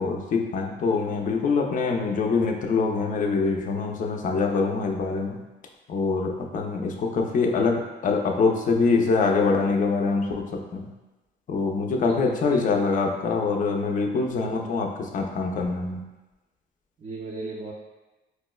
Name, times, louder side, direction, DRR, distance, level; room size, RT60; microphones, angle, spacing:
voice 1, 0.0-5.4 5.9-10.9 11.5-16.0, left 4 dB, 40° left, 2 dB, 0.4 m, -24 dB
voice 2, 12.1-12.6 17.0-17.7, right 3 dB, 35° right, -4 dB, 0.5 m, -35 dB
4.5 x 2.1 x 2.2 m, 1.1 s
cardioid pair, 90°, 20 cm